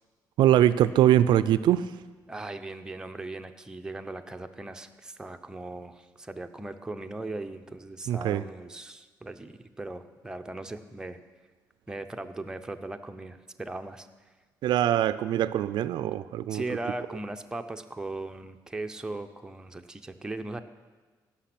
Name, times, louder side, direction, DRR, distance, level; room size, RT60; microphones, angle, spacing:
voice 1, 0.4-1.8 8.1-8.4 14.6-16.6, right 12 dB, 75° right, 15 dB, 0.3 m, -22 dB
voice 2, 2.3-11.2 11.9-14.1 16.5-20.6, right 2 dB, 10° right, 6 dB, 0.6 m, -38 dB
16.0 x 6.0 x 6.0 m, 1.4 s
cardioid pair, 125°, 8 cm